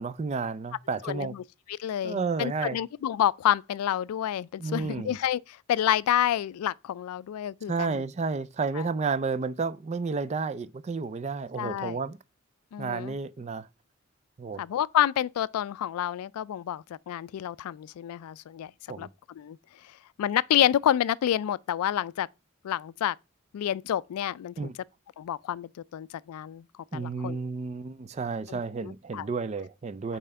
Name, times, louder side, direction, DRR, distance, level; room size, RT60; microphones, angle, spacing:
voice 1, 0.0-1.3 2.0-2.8 4.6-5.2 7.7-12.2 12.8-13.7 14.4-14.6 18.9-19.1 24.6-24.7 26.9-30.2, right 4 dB, 30° right, 0.3 m, -31 dB
voice 2, 1.0-1.4 1.7-8.0 8.8-8.9 11.6-12.0 12.7-13.2 14.6-18.7 19.0-19.1 19.4-19.6 20.2-22.3 22.6-23.2 23.5-24.7 25.2-26.6 26.9-27.4 28.5-29.3, left 11 dB, 85° left, 0.3 m, -28 dB
5.5 x 4.3 x 4.8 m
head